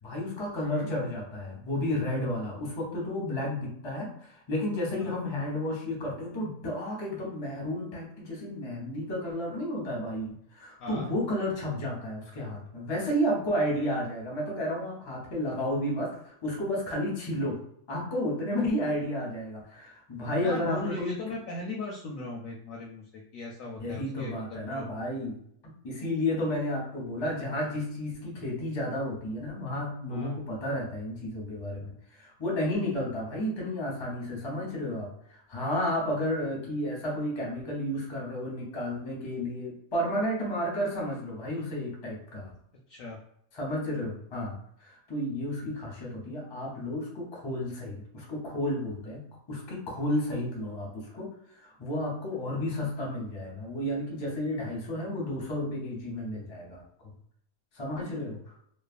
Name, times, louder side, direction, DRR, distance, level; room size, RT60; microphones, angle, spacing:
voice 1, 0.0-17.6 17.9-21.1 23.8-25.4 25.8-42.5 43.5-49.2 49.5-51.3 51.6-56.8 57.7-58.5, left 1 dB, 30° left, -2 dB, 0.5 m, -32 dB
voice 2, 20.4-24.9 30.1-30.4 42.9-43.2, left 2 dB, 70° left, -1 dB, 0.8 m, -38 dB
3.1 x 2.0 x 2.4 m, 0.69 s
omnidirectional pair, 1.8 m